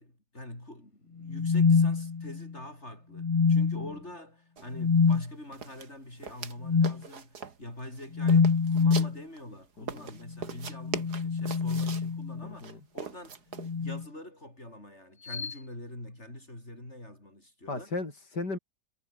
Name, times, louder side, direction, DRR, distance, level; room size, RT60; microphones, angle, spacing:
voice 1, 0.0-17.9, left 1 dB, 40° left, 8.5 m, -45 dB
sound 1, 1.2-2.5 3.2-3.9 4.7-5.2 6.6-7.0 8.1-9.2 10.7-12.5 13.6-14.0 15.3-15.5, left 5 dB, 55° left, 0.3 m, -25 dB
sound 2, 4.6-4.7 5.0-5.2 5.5-6.5 6.8-7.6 8.0-9.4 9.9-12.1 12.6-13.7, right 6 dB, 65° right, 2.6 m, -40 dB
voice 2, 9.8-10.1 12.4-12.8 17.7-18.6, left 3 dB, 70° left, 5.6 m, -36 dB
omnidirectional pair, 1.8 m